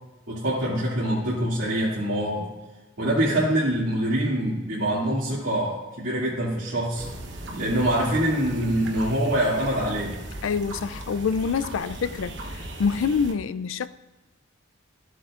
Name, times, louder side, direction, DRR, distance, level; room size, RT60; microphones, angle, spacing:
voice 1, 0.3-2.5 3.0-7.0 7.5-10.2, right 1 dB, 80° right, 2.4 m, -25 dB
sound 1, 6.9-13.3, right 1 dB, 60° right, 1.0 m, -38 dB
voice 2, 10.4-13.9, left 5 dB, 80° left, 0.4 m, -26 dB
14.0 x 7.8 x 2.5 m
head